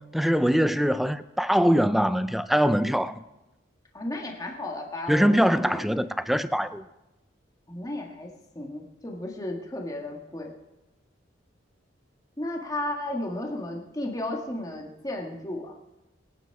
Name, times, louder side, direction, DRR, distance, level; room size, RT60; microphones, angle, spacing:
voice 1, 0.0-3.2 5.1-6.8, equal, ahead, 0.4 m, -23 dB
voice 2, 3.9-5.3 5.6-6.0 7.7-8.3 8.6-10.5 12.4-15.7, left 1 dB, 20° left, 1.7 m, -34 dB
22.5 x 9.2 x 4.8 m
head